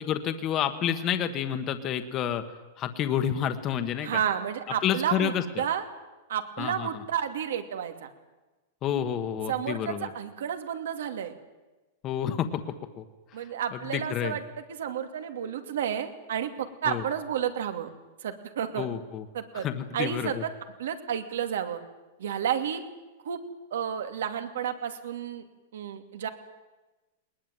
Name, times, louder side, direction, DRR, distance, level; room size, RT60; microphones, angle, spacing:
voice 1, 0.0-2.4 2.8-4.2 4.8-5.6 6.6-7.0 8.8-10.1 12.0-13.0 13.4-14.4 16.8-17.0 18.8-19.2 19.5-20.4, left 9 dB, 25° left, 8 dB, 1.3 m, -29 dB
voice 2, 4.0-5.8 6.3-8.1 9.5-11.3 13.3-14.4 14.8-17.9 18.2-18.9 19.3-19.7 19.9-20.5 20.8-21.8 22.2-22.8 23.2-23.4 23.7-25.4 25.7-26.3, right 9 dB, 85° right, 7 dB, 2.5 m, -31 dB
21.0 x 20.5 x 9.1 m, 1.1 s
supercardioid pair, 165°, 0 cm